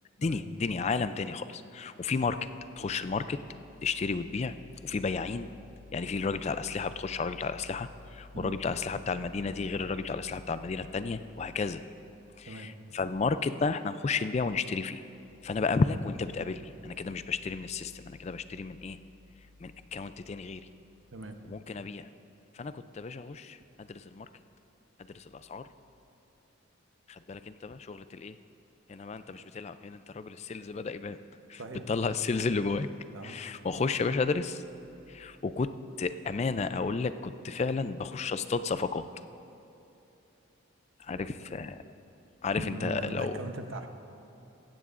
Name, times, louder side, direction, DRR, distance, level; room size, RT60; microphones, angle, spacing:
voice 1, 0.2-2.4 2.8-3.4 3.8-4.5 4.8-5.5 5.9-11.8 12.4-15.0 15.4-19.0 19.6-20.6 21.5-22.1 22.5-24.3 25.1-25.6 27.1-28.3 28.9-31.2 31.5-31.6 31.9-32.9 33.2-34.6 35.1-35.7 36.0-39.1 41.0-41.8 42.4-43.4, left 4 dB, 30° left, 12 dB, 0.3 m, -32 dB
voice 2, 31.6-31.9 33.1-33.4 41.1-41.6 42.6-43.9, right 1 dB, 65° right, 6 dB, 0.9 m, -40 dB
16.5 x 15.5 x 2.5 m, 3.0 s
head